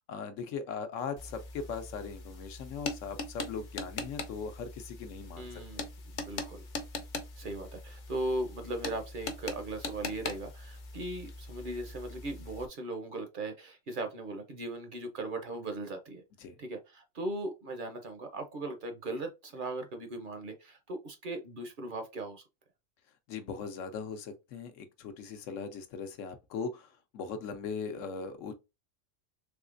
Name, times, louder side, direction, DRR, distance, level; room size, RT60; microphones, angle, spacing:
voice 1, 0.1-5.8 16.4-16.6 23.3-28.5, left 5 dB, 85° left, 1.0 m, -39 dB
sound 1, 1.2-12.7, left 3 dB, 50° left, 0.6 m, -41 dB
voice 2, 5.4-5.9 6.1-6.7 7.4-16.2 16.6-22.4, right 2 dB, 50° right, 0.7 m, -38 dB
3.6 x 3.1 x 2.4 m
omnidirectional pair, 1.3 m